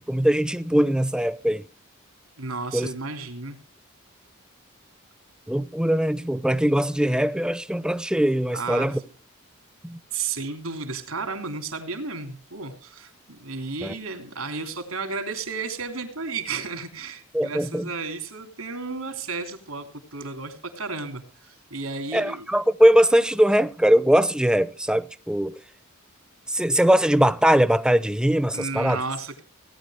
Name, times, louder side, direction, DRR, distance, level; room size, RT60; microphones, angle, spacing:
voice 1, 0.0-1.7 2.7-2.9 5.5-9.0 9.8-10.0 13.8-14.0 17.3-17.9 22.1-25.6 26.5-29.0, equal, 5° right, 0.6 m, -21 dB
voice 2, 2.4-3.6 8.5-9.0 10.1-22.5 28.5-29.4, right 4 dB, 85° right, 3.3 m, -33 dB
18.5 x 10.5 x 5.0 m
head